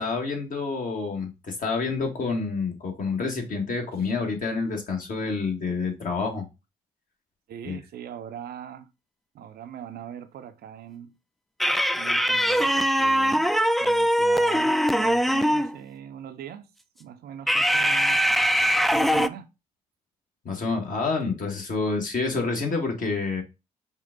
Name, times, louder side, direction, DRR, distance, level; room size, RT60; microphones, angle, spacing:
voice 1, 0.0-6.4 7.6-7.8 20.4-23.4, left 4 dB, 45° left, 1.6 m, -28 dB
voice 2, 7.5-8.9 9.3-11.1 11.9-13.5 13.8-16.7 17.0-18.2 18.9-19.5, right 9 dB, 60° right, 0.6 m, -40 dB
sound 1, 11.6-15.8 17.5-19.3, equal, ahead, 0.3 m, -22 dB
5.4 x 2.4 x 3.8 m
hypercardioid pair, 50°, 19 cm